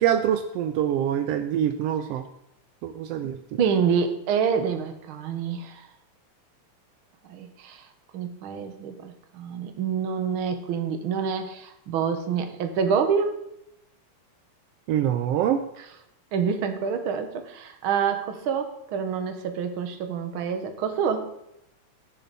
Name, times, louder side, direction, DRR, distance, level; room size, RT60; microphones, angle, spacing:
voice 1, 0.0-2.2 2.8-3.4 14.9-15.6, right 10 dB, 80° right, 8 dB, 1.4 m, -24 dB
voice 2, 3.2-5.9 7.3-7.8 8.1-13.4 16.3-21.3, right 6 dB, 60° right, 7 dB, 1.5 m, -27 dB
16.5 x 6.8 x 4.1 m, 0.80 s
omnidirectional pair, 3.5 m